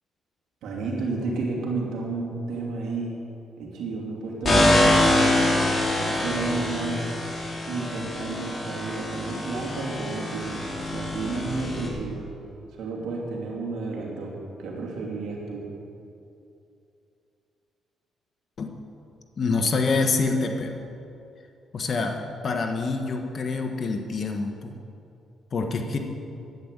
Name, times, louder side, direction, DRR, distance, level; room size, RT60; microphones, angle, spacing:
voice 1, 0.6-3.1 3.6-5.1 6.0-7.1 7.7-12.2 12.8-15.6, right 3 dB, 80° right, -2 dB, 2.9 m, -31 dB
sound 1, 4.4-11.9, left 1 dB, 30° left, 3.2 m, -24 dB
voice 2, 19.4-20.8 21.7-24.8 25.5-26.0, left 3 dB, 50° left, 4 dB, 1.2 m, -26 dB
11.0 x 9.6 x 8.1 m, 2.7 s
cardioid pair, 90°, 0 cm